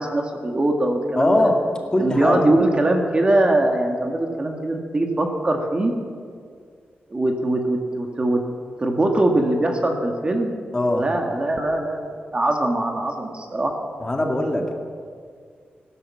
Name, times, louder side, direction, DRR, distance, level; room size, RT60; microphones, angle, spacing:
voice 1, 0.0-1.4 2.0-5.9 7.1-8.4 8.8-10.6 10.9-13.7, right 1 dB, 30° right, 3 dB, 1.8 m, -22 dB
voice 2, 1.2-1.6 1.9-2.5 10.7-11.1 14.0-14.7, left 1 dB, 20° left, 2 dB, 2.1 m, -20 dB
16.5 x 12.0 x 7.3 m, 2.1 s
wide cardioid pair, 115°, 4 cm